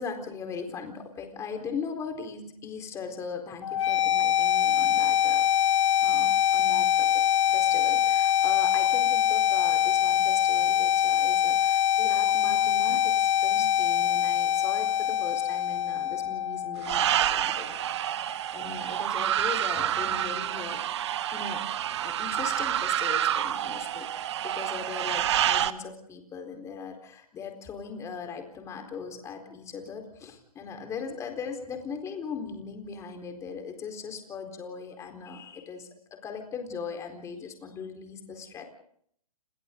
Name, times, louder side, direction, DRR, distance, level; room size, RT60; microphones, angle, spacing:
voice 1, 0.0-17.8 18.2-20.8 21.3-21.6 22.0-38.6, left 5 dB, 15° left, 5 dB, 4.3 m, -39 dB
sound 1, 3.6-17.6, left 11 dB, 55° left, 1.3 m, -24 dB
sound 2, 16.8-25.7, right 11 dB, 50° right, 1.4 m, -28 dB
30.0 x 29.0 x 3.9 m, 0.65 s
hypercardioid pair, 140°, 19 cm